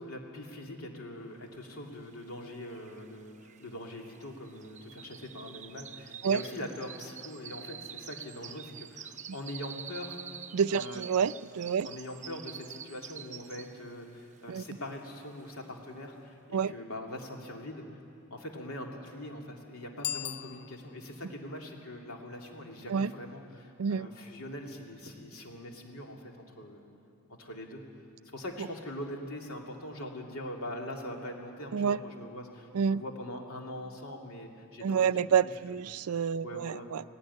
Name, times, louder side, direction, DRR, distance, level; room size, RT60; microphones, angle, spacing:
voice 1, 0.0-10.2 10.7-11.0 11.8-17.8 18.3-26.8 27.4-27.8 28.3-35.8 36.1-36.9, left 1 dB, 75° left, 1 dB, 2.9 m, -42 dB
sound 1, 2.2-2.3 2.5-14.0 14.4-14.7 15.1-15.2, right 8 dB, 35° right, 0.7 m, -47 dB
voice 2, 10.5-11.9 14.5-14.6 16.5-16.7 22.9-23.1 23.8-24.1 31.7-32.0 32.7-33.0 34.8-37.0, right 7 dB, 85° right, 16 dB, 0.4 m, -28 dB
Bicycle bell, 20.0-21.2, left 10 dB, 45° left, 0.4 m, -38 dB
18.0 x 18.0 x 9.7 m, 2.5 s
head